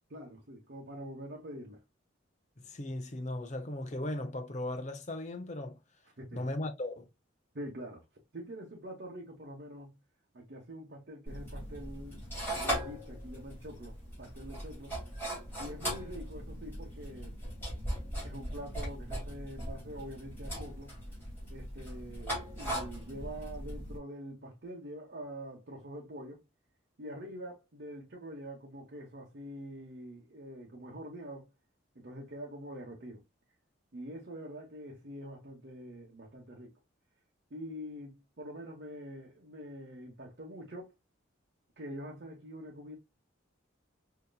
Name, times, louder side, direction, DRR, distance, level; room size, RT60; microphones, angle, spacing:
voice 1, 0.1-1.8 6.2-6.5 7.5-8.0 8.3-10.0 10.3-12.3 12.6-15.0 15.6-17.4 18.2-21.0 21.5-26.4 27.0-31.5 31.9-33.2 33.9-36.7 37.5-40.9 41.8-43.0, equal, 55° right, 0.9 m, -45 dB
voice 2, 2.6-5.8 6.3-7.1, left 1 dB, 35° left, 0.6 m, -37 dB
sound 1, 11.3-24.0, equal, 10° left, 2.4 m, -39 dB
5.2 x 2.8 x 2.2 m
head